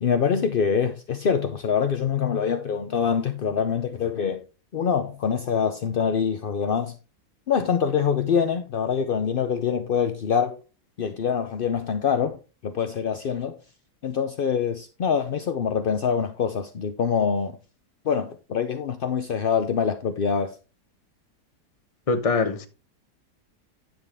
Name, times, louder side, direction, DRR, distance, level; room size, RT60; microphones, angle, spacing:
voice 1, 0.0-4.4 4.7-6.9 7.5-10.6 11.0-13.6 14.0-17.6 18.0-20.6, left 7 dB, 60° left, 0.5 m, -25 dB
voice 2, 22.1-22.7, left 4 dB, 30° left, 0.7 m, -23 dB
9.8 x 7.4 x 3.4 m
omnidirectional pair, 1.7 m